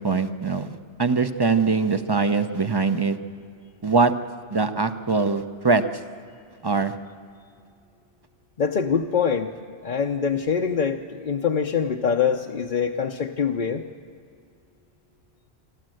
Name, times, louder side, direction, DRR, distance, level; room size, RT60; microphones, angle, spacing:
voice 1, 0.0-3.2 3.8-4.1 4.5-5.8 6.6-6.9, right 4 dB, 25° right, 9 dB, 0.7 m, -22 dB
voice 2, 8.6-9.5 9.8-13.8, left 6 dB, 50° left, 2 dB, 0.8 m, -24 dB
27.0 x 13.0 x 7.8 m, 2.4 s
omnidirectional pair, 1.1 m